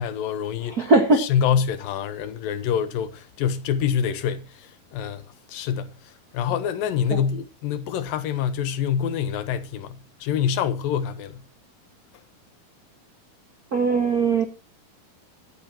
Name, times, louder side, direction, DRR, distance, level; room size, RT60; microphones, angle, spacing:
voice 1, 0.0-0.9 1.2-11.4, left 8 dB, 75° left, 2.6 m, -26 dB
voice 2, 0.7-1.3 7.1-7.2 13.7-14.4, right 3 dB, 90° right, 0.8 m, -20 dB
17.0 x 13.5 x 2.9 m
omnidirectional pair, 4.4 m